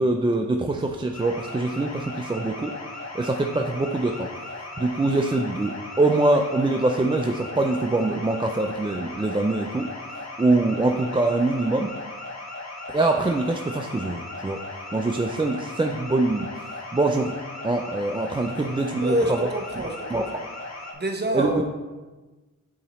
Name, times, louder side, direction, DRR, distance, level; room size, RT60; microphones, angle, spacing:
voice 1, 0.0-2.7 3.1-4.3 4.8-9.9 10.1-11.9 12.9-14.6 14.9-17.3 17.6-19.5 20.1-20.5 21.3-21.5, right 2 dB, 15° right, 3 dB, 0.4 m, -24 dB
sound 1, 1.1-20.9, left 2 dB, 55° left, 1.1 m, -37 dB
voice 2, 19.0-20.4 20.9-21.6, right 1 dB, 30° right, 4 dB, 0.8 m, -27 dB
8.6 x 2.9 x 4.1 m, 1.2 s
cardioid pair, 75°, 32 cm